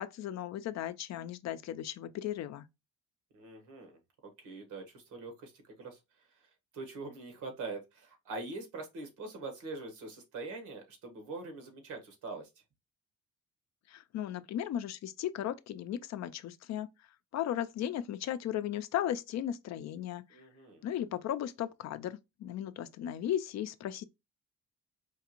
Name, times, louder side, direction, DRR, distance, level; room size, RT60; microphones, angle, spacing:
voice 1, 0.0-2.7 13.9-16.9 17.3-20.4 20.8-24.0, left 11 dB, 60° left, 0.4 m, -36 dB
voice 2, 3.3-5.5 5.8-6.0 6.7-12.5 20.3-20.8, right 3 dB, 80° right, 1.3 m, -43 dB
4.5 x 2.4 x 2.9 m
cardioid pair, 90°, 30 cm